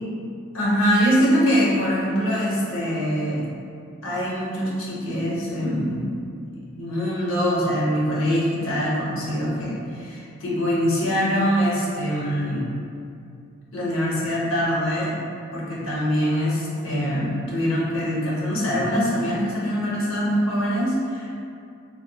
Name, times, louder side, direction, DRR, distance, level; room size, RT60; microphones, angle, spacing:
voice 1, 0.5-3.5 4.0-6.2 6.7-12.7 13.7-15.1 15.5-21.3, equal, 75° left, -6 dB, 0.7 m, -23 dB
3.8 x 2.3 x 2.2 m, 2.6 s
head